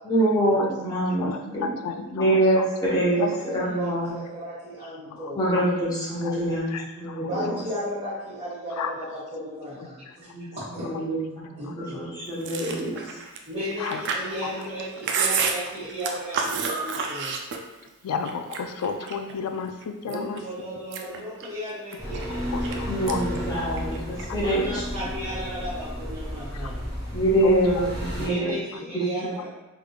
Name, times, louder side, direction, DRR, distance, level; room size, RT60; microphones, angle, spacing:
voice 1, 0.0-1.7 2.1-3.2 3.5-4.1 5.4-7.2 10.3-10.5 10.8-11.2 11.6-13.0 22.9-24.7 27.1-28.5 28.9-29.3, right 1 dB, 15° left, -7 dB, 0.9 m, -24 dB
voice 2, 1.2-2.7 3.2-3.4 5.1-5.7 6.2-7.3 8.8-8.9 10.9-11.0 11.7-11.8 13.8-14.0 14.4-14.5 18.0-20.4 22.5-23.2 23.6-23.7 24.3-24.4 26.5-26.7 27.4-27.6, left 6 dB, 85° left, 7 dB, 0.3 m, -33 dB
voice 3, 3.1-5.4 7.2-11.0 11.6-12.1 13.0-13.1 13.5-17.3 20.0-22.9 24.3-27.0 28.1-29.5, equal, 35° right, -12 dB, 1.2 m, -34 dB
Chewing mastication, 12.4-17.9 18.2-19.3 19.8-20.4 20.8-22.8 23.1-23.4 23.7-24.5, right 5 dB, 55° right, 0.4 m, -30 dB
sound 1, 22.0-28.3, equal, 15° right, 0.8 m, -33 dB
3.5 x 3.3 x 2.3 m, 1.0 s
head